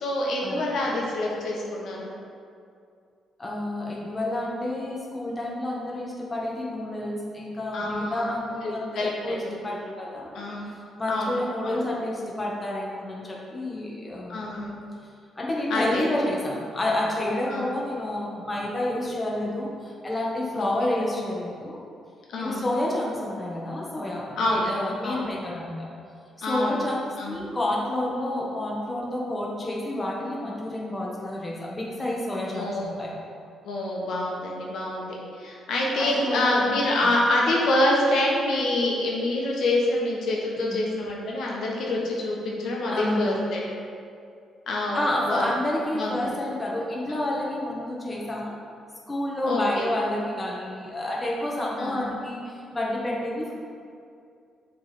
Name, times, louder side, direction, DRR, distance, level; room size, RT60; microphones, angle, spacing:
voice 1, 0.0-2.1 7.7-8.3 8.9-9.5 10.3-10.7 11.1-11.8 14.3-14.8 15.7-16.1 17.5-17.7 19.5-19.6 20.5-20.9 22.3-22.7 24.4-24.7 25.0-25.3 26.4-26.8 27.2-27.4 32.5-33.0 33.6-43.6 44.7-45.5 45.9-46.3 49.4-49.9 51.8-52.1, left 1 dB, 70° left, -3 dB, 1.1 m, -26 dB
voice 2, 3.4-10.4 11.0-14.5 15.4-21.8 22.4-25.9 26.4-33.1 36.0-37.1 40.6-40.8 42.9-43.4 44.9-48.5 49.1-53.5, left 1 dB, 20° left, -4 dB, 1.2 m, -29 dB
6.7 x 3.4 x 4.3 m, 2.4 s
cardioid pair, 90°, 0 cm